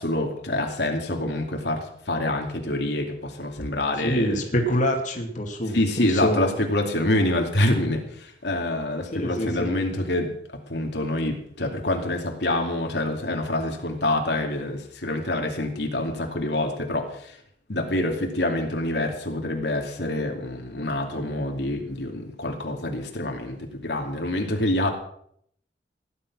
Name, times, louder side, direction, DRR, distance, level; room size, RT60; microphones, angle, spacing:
voice 1, 0.0-4.4 5.7-17.4 17.7-24.9, left 1 dB, 70° left, 2 dB, 2.6 m, -26 dB
voice 2, 4.0-6.5 9.1-9.7, equal, 45° left, 2 dB, 2.5 m, -26 dB
17.0 x 11.0 x 6.2 m, 0.68 s
head